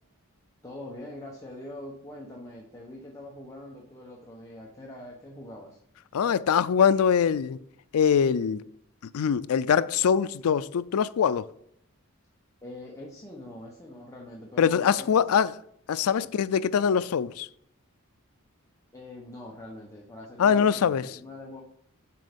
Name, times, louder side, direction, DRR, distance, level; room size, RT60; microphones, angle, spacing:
voice 1, 0.6-5.8 12.6-15.2 16.2-16.3 18.9-21.6, left 1 dB, 15° left, 1.0 m, -43 dB
voice 2, 6.1-7.6 7.9-8.6 9.1-11.5 14.6-15.5 15.9-17.5 20.4-21.1, left 7 dB, 80° left, 0.4 m, -23 dB
7.6 x 5.3 x 5.2 m
head